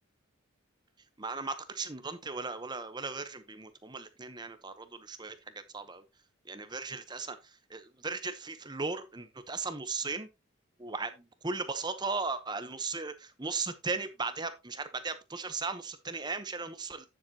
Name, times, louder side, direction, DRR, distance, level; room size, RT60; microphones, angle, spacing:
voice 1, 1.2-6.0 6.4-10.3 10.8-17.1, right 4 dB, 20° right, 0.8 m, -37 dB
9.2 x 7.5 x 2.8 m
head